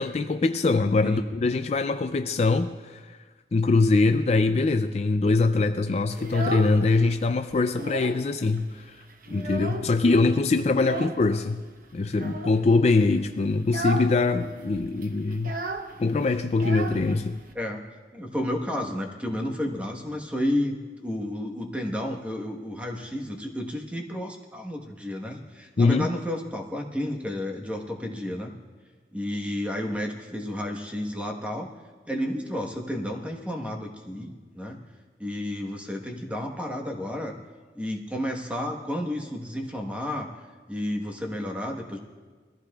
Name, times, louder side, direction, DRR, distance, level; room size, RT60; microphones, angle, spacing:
voice 1, 0.0-3.2 3.5-8.9 9.3-11.6 11.9-15.6 16.0-17.4 25.8-26.1, left 3 dB, 35° left, 8 dB, 0.4 m, -23 dB
Child speech kid speaking, 6.1-7.1 7.5-8.3 8.6-8.7 9.0-10.1 10.7-11.2 12.1-12.6 13.0-13.2 13.6-14.2 14.4-14.5 14.7-17.5, right 1 dB, 50° right, 0.8 m, -34 dB
voice 2, 18.1-28.5 29.1-31.7 32.1-34.8 35.2-37.3 37.7-40.3 40.7-42.0, left 1 dB, 10° right, 2 dB, 1.2 m, -31 dB
21.5 x 15.0 x 2.3 m, 1.5 s
head